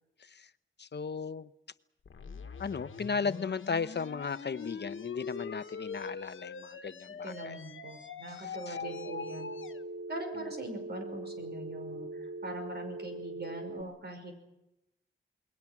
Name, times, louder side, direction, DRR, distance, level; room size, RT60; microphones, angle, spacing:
voice 1, 0.8-1.5 2.6-7.6 8.5-8.8, left 5 dB, 60° left, 13 dB, 0.9 m, -36 dB
sound 1, 2.1-9.8, left 5 dB, 85° left, 1.4 m, -43 dB
voice 2, 7.2-9.5 10.1-14.3, right 1 dB, 55° right, 5 dB, 5.8 m, -42 dB
Telephone, 8.8-13.8, right 2 dB, 80° right, 1.2 m, -41 dB
29.0 x 21.0 x 6.1 m, 0.91 s
wide cardioid pair, 125°, 20 cm